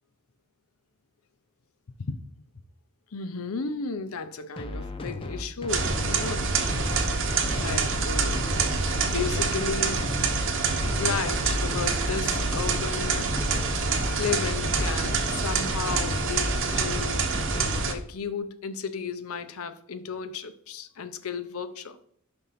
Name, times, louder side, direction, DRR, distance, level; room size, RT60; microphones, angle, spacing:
voice 1, 3.1-6.5 7.6-8.5 9.0-10.2 10.9-13.4 14.2-17.3 17.9-22.0, left 5 dB, 75° left, 0.6 m, -34 dB
sound 1, 4.6-17.8, left 2 dB, 25° left, 0.6 m, -35 dB
sound 2, 5.7-17.9, right 4 dB, 60° right, 0.8 m, -26 dB
5.3 x 3.7 x 5.7 m
head